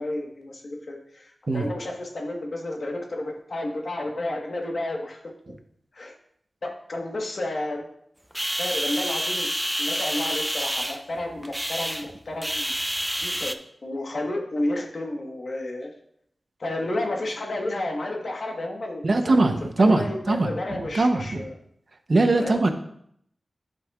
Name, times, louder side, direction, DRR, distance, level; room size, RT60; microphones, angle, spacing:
voice 1, 0.0-5.2 5.9-6.1 6.6-7.9 8.6-9.5 9.8-12.8 13.2-15.9 16.6-19.3 19.8-21.6 22.4-22.7, left 1 dB, 60° left, 1 dB, 1.3 m, -31 dB
sound 1, 8.3-13.5, equal, 5° right, 0.4 m, -28 dB
voice 2, 19.0-20.5 20.9-21.4 22.1-22.7, right 2 dB, 55° right, 7 dB, 0.8 m, -21 dB
11.0 x 5.4 x 2.4 m, 0.70 s
wide cardioid pair, 85°, 0 cm